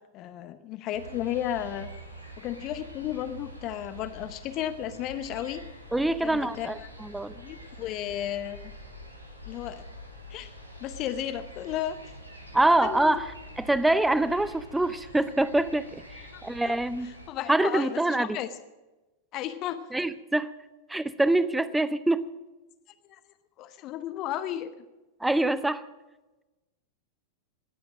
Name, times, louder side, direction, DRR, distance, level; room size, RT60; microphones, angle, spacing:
voice 1, 0.1-1.9 2.4-5.6 6.2-6.7 7.3-8.7 9.5-9.8 10.3-10.5 10.8-12.0 12.8-13.2 16.3-16.8 17.3-18.5 19.3-19.8 23.1-23.2 23.6-24.7, left 11 dB, 35° left, 12 dB, 0.8 m, -33 dB
sound 1, 0.9-17.3, equal, 85° right, 2.0 m, -46 dB
voice 2, 5.9-7.3 12.5-17.1 17.5-18.4 19.9-20.5 20.9-22.3 25.2-25.9, right 2 dB, 5° right, 16 dB, 0.7 m, -25 dB
19.5 x 8.2 x 6.2 m, 1.1 s
figure-of-eight pair, 90°, 0 cm